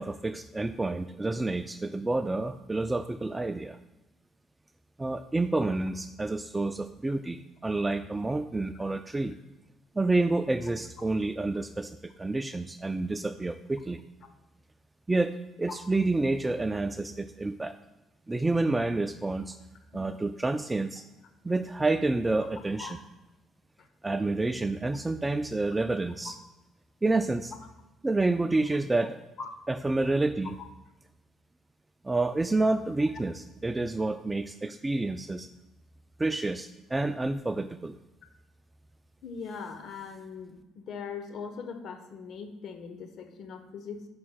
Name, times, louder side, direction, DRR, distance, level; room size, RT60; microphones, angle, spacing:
voice 1, 0.0-3.8 5.0-9.4 10.0-14.0 15.1-17.7 18.3-19.6 19.9-21.0 21.4-23.0 24.0-26.4 27.0-27.5 28.0-29.2 29.7-30.5 32.0-35.5 36.2-37.9, right 2 dB, 20° right, 10 dB, 0.3 m, -29 dB
voice 2, 39.2-44.1, left 5 dB, 60° left, 7 dB, 0.9 m, -40 dB
9.3 x 5.6 x 2.2 m, 1.0 s
hypercardioid pair, 60°, 0 cm